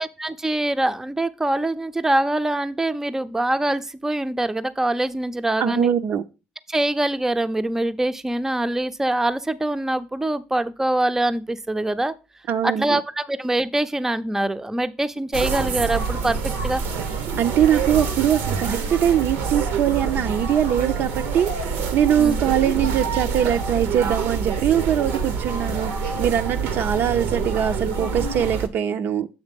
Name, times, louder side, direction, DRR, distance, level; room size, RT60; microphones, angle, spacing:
voice 1, 0.0-5.9 6.7-12.1 12.6-16.8 22.2-22.4, right 1 dB, 10° right, 0.5 m, -24 dB
voice 2, 5.6-6.2 12.5-13.0 17.4-21.5 21.9-25.9 26.2-29.3, right 9 dB, 60° right, 0.5 m, -22 dB
sound 1, 15.3-28.7, right 5 dB, 85° right, 0.9 m, -26 dB
7.2 x 3.3 x 5.2 m
supercardioid pair, 80°, 4 cm